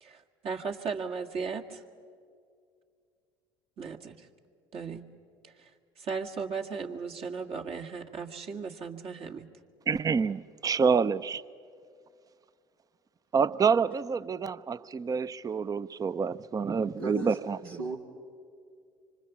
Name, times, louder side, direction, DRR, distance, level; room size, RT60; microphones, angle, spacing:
voice 1, 0.0-1.8 3.8-4.3 4.7-5.0 5.4-5.7 6.0-9.5, right 5 dB, 55° right, 1.9 m, -36 dB
voice 2, 9.9-11.4 13.3-17.6, right 6 dB, 30° right, 0.7 m, -27 dB
voice 3, 17.0-17.4 17.6-18.0, right 3 dB, 90° right, 2.6 m, -36 dB
26.0 x 25.0 x 7.2 m
hypercardioid pair, 65°, 12 cm